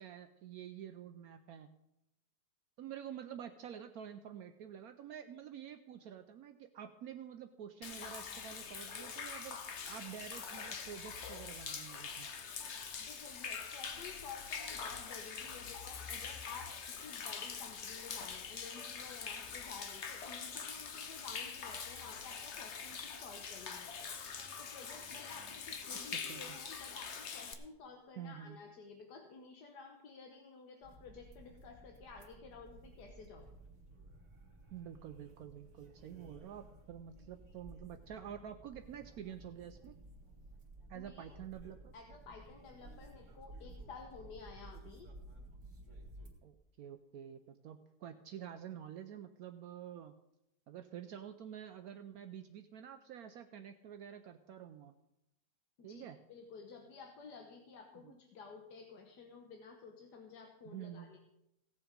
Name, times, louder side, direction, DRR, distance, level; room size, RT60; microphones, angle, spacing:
voice 1, 0.0-1.7 2.8-9.6 9.9-12.3 26.1-26.6 28.2-28.6 34.7-40.0 40.9-41.9 46.4-50.1 50.7-54.9 55.8-56.2 58.0-58.1 60.6-61.1, right 9 dB, 70° right, 8 dB, 1.0 m, -48 dB
Human voice / Rain / Stream, 7.8-27.5, left 6 dB, 50° left, 1.1 m, -44 dB
voice 2, 13.1-16.7 17.0-24.1 24.4-33.5 40.9-41.3 41.9-45.1 55.8-61.2, left 5 dB, 85° left, 3 dB, 1.7 m, -53 dB
sound 1, 30.8-46.3, right 1 dB, 45° right, 2.3 m, -55 dB
16.5 x 7.3 x 5.2 m, 0.85 s
omnidirectional pair, 1.7 m